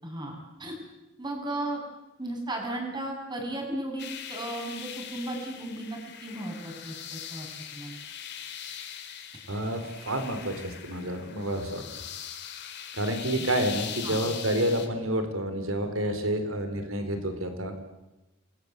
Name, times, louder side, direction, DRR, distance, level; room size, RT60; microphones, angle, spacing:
voice 1, 0.0-0.7 1.2-1.8 2.2-7.5 7.7-8.0 13.4-13.5 14.0-14.2, right 1 dB, 20° right, 2 dB, 7.1 m, -35 dB
sound 1, 4.0-14.9, left 9 dB, 55° left, 3.1 m, -41 dB
voice 2, 9.5-11.8 13.0-17.8, right 1 dB, 90° right, 8 dB, 4.1 m, -29 dB
28.5 x 22.0 x 8.2 m, 1.0 s
head